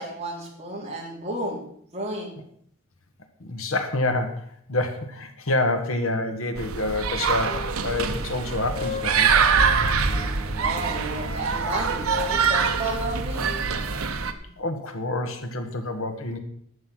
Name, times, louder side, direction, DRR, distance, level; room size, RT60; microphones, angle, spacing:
voice 1, 0.0-1.6 1.9-2.3 10.6-13.4, right 2 dB, 30° right, -2 dB, 3.1 m, -32 dB
voice 2, 3.4-9.3 14.6-16.4, left 2 dB, 65° left, 6 dB, 1.4 m, -27 dB
sound 1, 6.6-14.3, right 5 dB, 75° right, 0.9 m, -24 dB
Wind instrument woodwind instrument, 7.0-10.3 10.7-14.1, left 5 dB, 30° left, 1.9 m, -37 dB
sound 2, 8.1-15.0, equal, 10° right, 3.5 m, -44 dB
11.0 x 7.8 x 6.2 m, 0.65 s
head